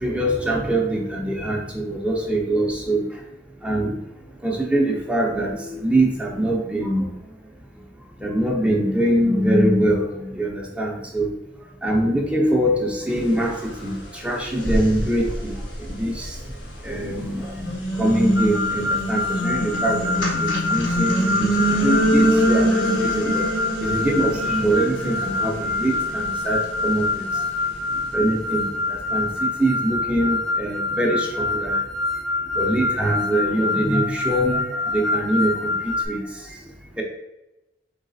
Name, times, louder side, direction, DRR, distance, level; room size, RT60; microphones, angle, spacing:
voice 1, 0.0-3.0 3.6-3.9 4.4-7.1 8.2-10.0 10.4-11.3 11.8-13.5 13.8-14.0 14.2-15.5 16.0-16.3 16.8-17.4 18.0-21.5 21.8-23.4 23.8-27.2 28.1-28.7 29.1-31.8 32.6-34.6 34.9-35.7 36.1-36.2, right 1 dB, 5° right, -1 dB, 0.5 m, -23 dB
sound 1, 13.9-14.0 14.5-16.9 17.4-28.7, equal, 90° left, 1.3 m, -25 dB
sound 2, 18.4-36.1, left 3 dB, 70° left, 1.1 m, -26 dB
4.0 x 3.1 x 3.9 m, 0.95 s
head